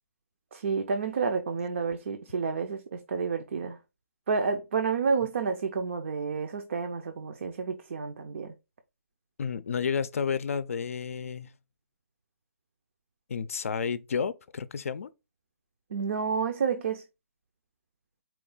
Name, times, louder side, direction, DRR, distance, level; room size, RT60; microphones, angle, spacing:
voice 1, 0.5-3.8 4.3-8.5 15.9-17.0, right 5 dB, 60° right, 0.6 m, -30 dB
voice 2, 9.4-11.5 13.3-15.1, left 6 dB, 75° left, 0.4 m, -31 dB
4.4 x 2.3 x 3.8 m
hypercardioid pair, 160°, 8 cm